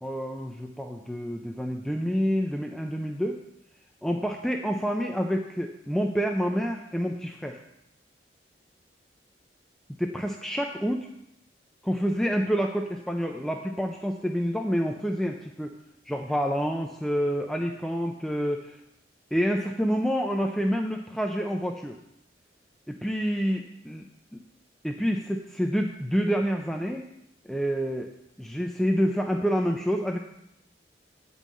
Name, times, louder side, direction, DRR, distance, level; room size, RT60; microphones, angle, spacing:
voice 1, 0.0-3.4 4.0-7.6 10.0-11.1 11.8-15.7 16.1-18.8 19.3-22.0 22.9-24.0 24.3-24.4 24.8-27.1 27.4-28.1 28.4-30.2, equal, ahead, 2 dB, 0.5 m, -28 dB
9.5 x 5.5 x 7.5 m, 0.80 s
head